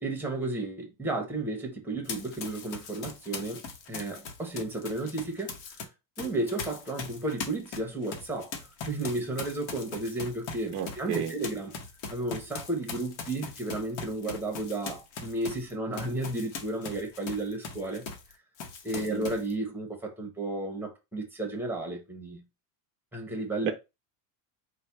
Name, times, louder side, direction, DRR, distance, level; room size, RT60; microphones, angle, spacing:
voice 1, 0.0-3.6 3.9-5.6 6.2-11.7 12.1-18.0 18.8-22.4 23.1-23.7, right 2 dB, 5° right, 0.8 m, -33 dB
Run, 2.0-5.8 6.2-18.3 18.6-19.5, left 5 dB, 65° left, 1.1 m, -40 dB
voice 2, 10.7-11.3 18.9-19.3 23.6-23.7, right 9 dB, 30° right, 0.4 m, -33 dB
4.1 x 2.2 x 4.5 m
cardioid pair, 150°, 48 cm